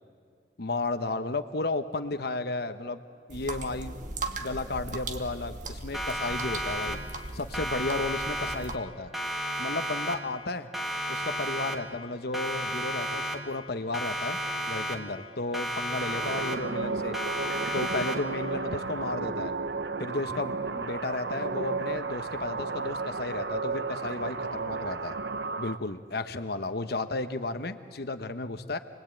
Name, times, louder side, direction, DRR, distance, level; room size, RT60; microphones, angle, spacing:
voice 1, 0.6-3.0 3.3-4.0 4.4-7.0 7.3-9.1 9.6-10.7 11.1-14.4 14.7-17.2 17.7-19.5 20.0-25.2 25.6-28.8, left 2 dB, 60° left, 9 dB, 1.1 m, -33 dB
sound 1, 3.3-8.8, right 3 dB, 45° right, 1.7 m, -38 dB
Siren, 5.9-7.3 7.5-8.9 9.1-10.5 10.7-12.1 12.3-13.7 13.9-15.3 15.5-16.9 17.1-18.5, equal, ahead, 2.0 m, -33 dB
sound 2, 16.0-25.8, right 4 dB, 75° right, 1.1 m, -33 dB
29.0 x 20.5 x 9.1 m, 2.2 s
head